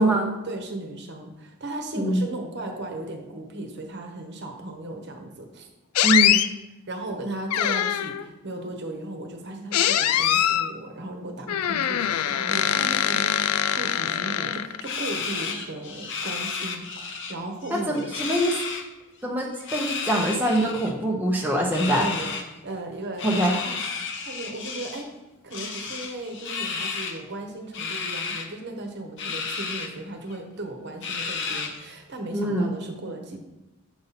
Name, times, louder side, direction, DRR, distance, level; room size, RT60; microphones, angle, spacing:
voice 1, 0.4-5.7 6.9-18.1 21.8-22.4 22.6-23.8 24.2-25.1 25.4-33.4, right 2 dB, 50° right, 3 dB, 1.1 m, -36 dB
sound 1, 6.0-6.5 7.5-8.3 9.7-10.7 11.5-14.9, left 10 dB, 90° left, 0.4 m, -23 dB
voice 2, 6.0-6.4 17.7-18.6 19.2-22.1 23.2-23.6 32.3-32.7, right 1 dB, 10° right, -2 dB, 0.7 m, -23 dB
sound 2, 14.8-17.3 17.6-18.8 19.6-20.9 21.7-22.5 23.2-25.1 25.5-27.2 27.7-28.5 29.2-29.9 30.3-30.4 31.0-31.9, left 5 dB, 55° left, 0.8 m, -32 dB
7.9 x 5.5 x 4.2 m, 0.99 s
head